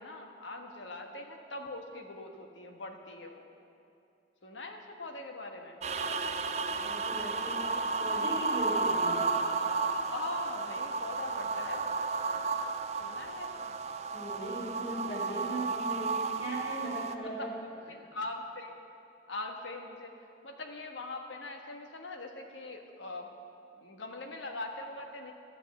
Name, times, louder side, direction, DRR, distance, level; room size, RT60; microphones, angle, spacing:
voice 1, 0.0-3.5 4.4-5.8 9.3-12.0 13.0-13.7 14.3-14.9 17.2-17.5 17.9-18.8 19.3-20.1 20.4-23.3 23.8-25.3, left 2 dB, 85° left, 4 dB, 1.3 m, -42 dB
sound 1, 5.8-17.2, right 4 dB, 35° right, 0.4 m, -33 dB
voice 2, 6.7-9.3 14.1-17.5, right 1 dB, 35° left, -4 dB, 3.0 m, -38 dB
14.0 x 7.6 x 7.9 m, 2.6 s
head